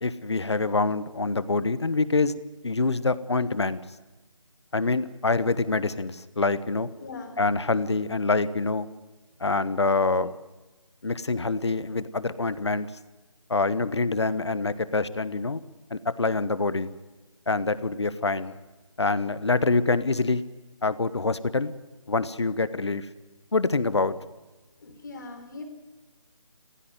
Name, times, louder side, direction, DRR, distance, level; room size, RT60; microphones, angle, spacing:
voice 1, 0.0-3.8 4.7-6.9 7.4-8.9 9.4-10.3 11.0-12.9 13.5-15.6 15.9-16.9 17.5-18.5 19.0-20.4 20.8-21.7 22.1-23.1 23.5-24.2, left 3 dB, 55° left, 15 dB, 1.3 m, -25 dB
voice 2, 7.0-7.4 24.8-25.6, left 3 dB, 35° left, 6 dB, 3.8 m, -40 dB
22.0 x 15.5 x 9.4 m, 1.2 s
figure-of-eight pair, 160°, 17 cm